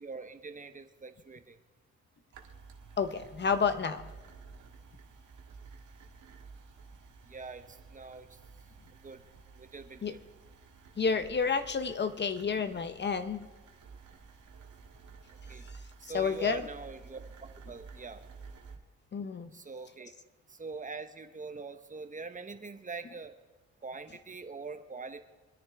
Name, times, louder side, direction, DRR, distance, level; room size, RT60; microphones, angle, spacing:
voice 1, 0.0-1.6 7.2-8.4 9.0-9.2 9.5-10.2 15.5-15.6 16.0-18.2 19.5-20.1 20.5-23.4 23.8-25.2, right 4 dB, 25° right, 8 dB, 1.0 m, -43 dB
sound 1, 2.3-18.8, right 5 dB, 70° right, 1.7 m, -52 dB
voice 2, 3.0-4.0 10.0-10.1 11.0-13.5 16.1-16.6 19.1-19.5, left 5 dB, 35° left, 11 dB, 0.8 m, -30 dB
23.5 x 10.0 x 3.5 m, 1.3 s
cardioid pair, 90°, 30 cm